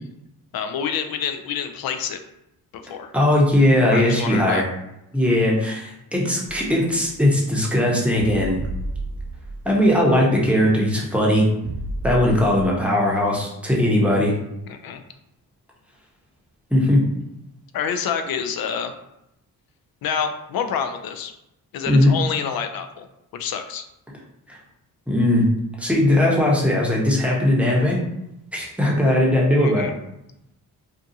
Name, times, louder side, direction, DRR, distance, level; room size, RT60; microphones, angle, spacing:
voice 1, 0.5-2.2 2.8-3.1 3.9-4.7 14.7-15.0 17.7-18.9 20.0-21.3 21.7-23.1 23.3-23.9 29.6-30.0, left 7 dB, 65° left, 7 dB, 0.5 m, -27 dB
voice 2, 3.1-4.7 5.1-8.6 9.6-11.5 12.0-14.3 16.7-17.0 21.9-22.1 24.5-24.6 25.1-25.5 25.8-28.0 28.5-29.9, left 1 dB, 5° right, -3 dB, 0.8 m, -19 dB
sound 1, 6.4-7.3 8.2-9.9 10.1-10.2 11.6-12.8, right 2 dB, 40° right, 0.5 m, -32 dB
2.6 x 2.3 x 2.6 m, 0.86 s
cardioid pair, 65°, 40 cm